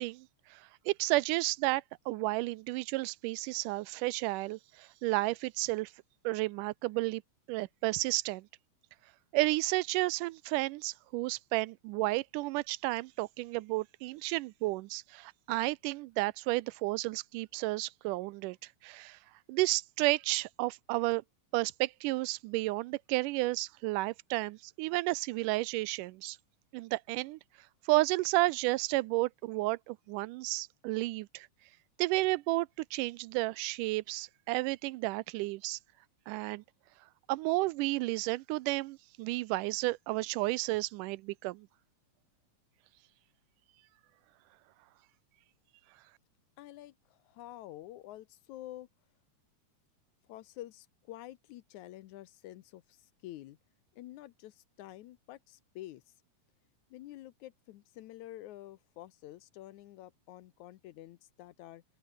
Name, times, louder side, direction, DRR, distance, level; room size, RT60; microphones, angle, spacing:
voice 1, 0.0-5.9 6.2-7.2 7.5-8.5 9.3-18.6 18.8-19.2 19.5-21.2 21.5-26.4 26.7-27.4 27.9-31.5 32.0-35.8 36.3-36.6 37.3-41.7, right 20 dB, 85° right, 2.1 m, -32 dB
voice 2, 46.6-48.9 50.3-53.6 53.9-56.0 56.9-61.8, left 14 dB, 75° left, 2.1 m, -48 dB
open air
omnidirectional pair, 3.7 m